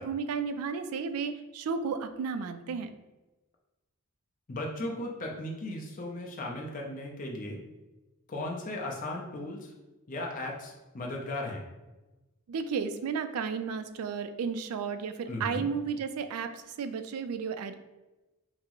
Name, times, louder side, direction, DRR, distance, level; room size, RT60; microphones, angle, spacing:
voice 1, 0.0-2.9 12.5-17.7, right 5 dB, 75° right, 10 dB, 0.3 m, -33 dB
voice 2, 4.5-7.6 8.3-9.7 10.1-11.6 15.3-15.7, left 1 dB, 35° left, -1 dB, 0.5 m, -36 dB
5.7 x 2.0 x 3.0 m, 1.1 s
head